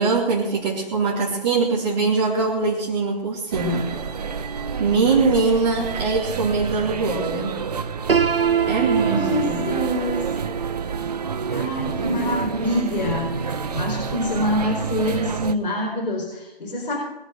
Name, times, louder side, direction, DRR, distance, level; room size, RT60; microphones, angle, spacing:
voice 1, 0.0-3.9 4.8-7.6 8.7-9.8 12.0-12.2, right 4 dB, 25° right, -6 dB, 2.9 m, -22 dB
sound 1, 3.5-15.6, right 5 dB, 45° right, 0.9 m, -29 dB
Piano, 8.1-13.9, right 7 dB, 75° right, 1.0 m, -26 dB
voice 2, 8.6-10.3 11.5-17.0, left 1 dB, 55° left, -3 dB, 5.0 m, -26 dB
21.5 x 8.2 x 6.5 m, 0.94 s
figure-of-eight pair, 150°, 29 cm